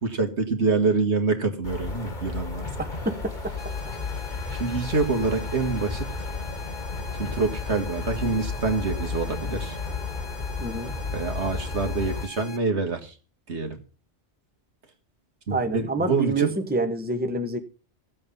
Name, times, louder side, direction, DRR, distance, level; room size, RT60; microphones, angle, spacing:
voice 1, 0.0-2.7 4.5-6.1 7.2-9.8 11.1-13.1 13.5-13.8 15.5-16.5, right 4 dB, 75° right, 2.1 m, -26 dB
sound 1, 1.6-12.3, left 4 dB, 45° left, 1.7 m, -33 dB
voice 2, 2.8-3.1 10.6-10.9 15.5-17.6, right 3 dB, 10° right, 1.1 m, -27 dB
sound 2, 3.6-12.6, left 2 dB, 65° left, 2.1 m, -44 dB
15.5 x 7.8 x 5.5 m
omnidirectional pair, 1.2 m